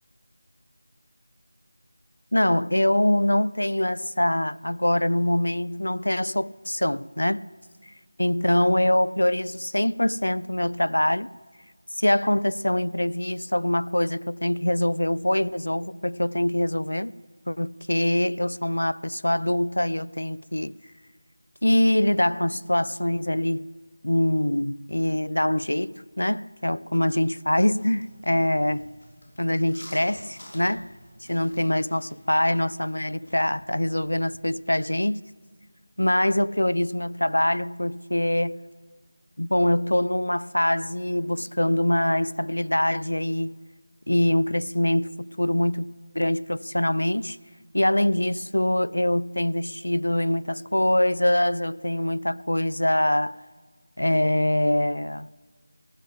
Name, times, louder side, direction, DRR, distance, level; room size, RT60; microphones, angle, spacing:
voice 1, 2.3-7.5 8.2-11.3 12.0-17.1 17.5-20.8 21.6-23.7 24.0-28.9 29.4-30.9 31.3-35.2 36.0-38.6 39.4-43.6 44.1-45.9 46.1-47.4 47.7-53.4 54.0-55.3, left 1 dB, 80° left, 0.3 m, -24 dB
sound 1, 27.7-34.2, equal, 60° left, 3.6 m, -50 dB
17.5 x 9.5 x 7.4 m
figure-of-eight pair, 170°, 0 cm